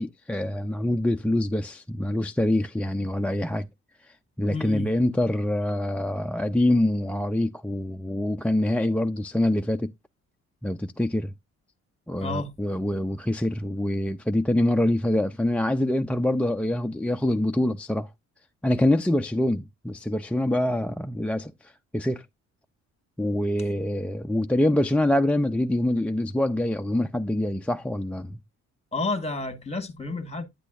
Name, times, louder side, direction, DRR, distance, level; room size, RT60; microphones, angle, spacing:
voice 1, 0.0-3.7 4.0-9.9 10.6-11.3 12.1-18.1 18.6-22.3 23.2-28.4, left 1 dB, 5° left, 0.4 m, -25 dB
voice 2, 4.5-4.9 12.2-12.5 28.9-30.4, left 3 dB, 20° left, 1.5 m, -30 dB
9.2 x 8.2 x 2.4 m
cardioid pair, 90°, 30 cm